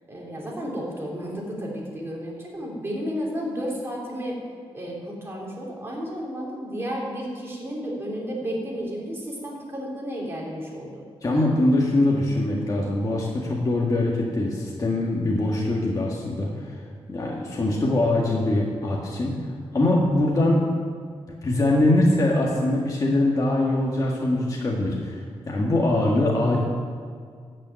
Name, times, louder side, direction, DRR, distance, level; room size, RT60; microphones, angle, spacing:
voice 1, 0.1-4.4 4.7-11.0, equal, 20° right, -3 dB, 3.8 m, -32 dB
voice 2, 11.2-16.7 17.1-19.4 19.7-20.6 21.4-26.6, left 1 dB, 35° left, -3 dB, 1.8 m, -22 dB
13.5 x 6.7 x 9.2 m, 2.1 s
wide cardioid pair, 130°, 11 cm